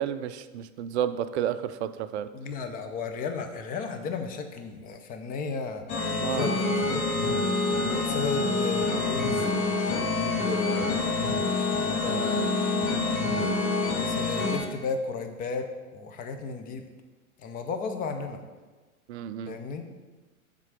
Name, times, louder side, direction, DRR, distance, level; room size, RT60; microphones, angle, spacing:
voice 1, 0.0-2.3 6.2-6.6 19.1-19.6, right 10 dB, 50° right, 12 dB, 0.5 m, -31 dB
voice 2, 2.3-5.8 6.3-7.4 7.8-12.5 13.3-15.7 15.9-16.9 17.4-18.4 19.5-19.8, left 5 dB, 20° left, 6 dB, 0.6 m, -35 dB
sound 1, 5.9-14.6, left 3 dB, 60° left, 2.0 m, -27 dB
7.4 x 3.8 x 6.4 m, 1.3 s
hypercardioid pair, 120°, 44 cm